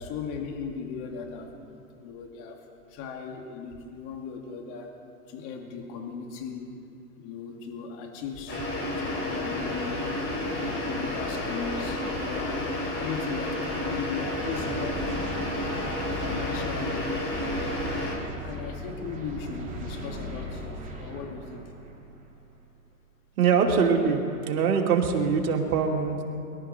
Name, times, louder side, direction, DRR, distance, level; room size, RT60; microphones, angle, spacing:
voice 1, 0.0-1.5 2.0-2.6 2.9-5.0 5.3-6.8 7.2-8.6 8.9-10.2 10.5-12.6 13.0-15.0 15.6-17.1 17.5-17.9 18.3-21.7, left 5 dB, 40° left, 2 dB, 2.6 m, -37 dB
sound 1, 8.5-18.2, left 1 dB, 25° left, 4.3 m, -31 dB
sound 2, 14.4-22.6, equal, 15° right, 3.3 m, -38 dB
voice 2, 23.4-24.2 24.5-26.2, right 6 dB, 65° right, 2 dB, 2.5 m, -23 dB
23.5 x 12.5 x 4.4 m, 2.7 s
hypercardioid pair, 120°, 47 cm